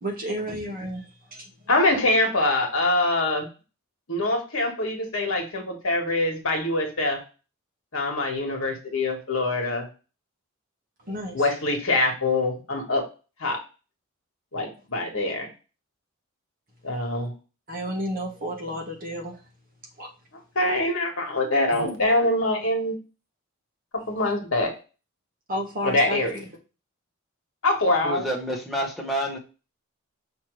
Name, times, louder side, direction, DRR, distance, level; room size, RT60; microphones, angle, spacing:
voice 1, 0.0-1.5 11.0-11.4 17.7-19.4 20.0-20.1 21.7-21.9 25.5-26.4, equal, 40° right, 1.3 m, -32 dB
voice 2, 1.7-3.5 4.1-7.2 7.9-9.9 11.3-13.1 13.4-13.6 14.5-15.5 16.8-17.3 20.5-23.0 24.1-24.7 25.8-26.4 27.6-28.3, left 2 dB, 65° left, 1.5 m, -24 dB
voice 3, 28.0-29.4, right 1 dB, ahead, 1.1 m, -28 dB
5.7 x 3.0 x 3.1 m
head